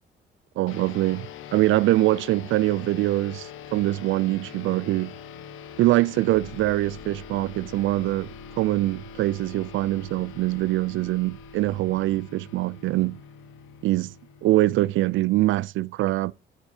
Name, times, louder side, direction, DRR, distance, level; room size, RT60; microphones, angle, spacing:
voice 1, 0.6-5.1 5.8-8.3 8.6-13.2 13.8-14.1 14.4-16.3, right 17 dB, 80° right, 0.4 m, -23 dB
sound 1, 0.7-15.5, left 7 dB, 85° left, 1.2 m, -43 dB
sound 2, 6.3-12.2, left 6 dB, 45° left, 2.6 m, -51 dB
11.0 x 8.0 x 2.8 m
cardioid pair, 90°, 20 cm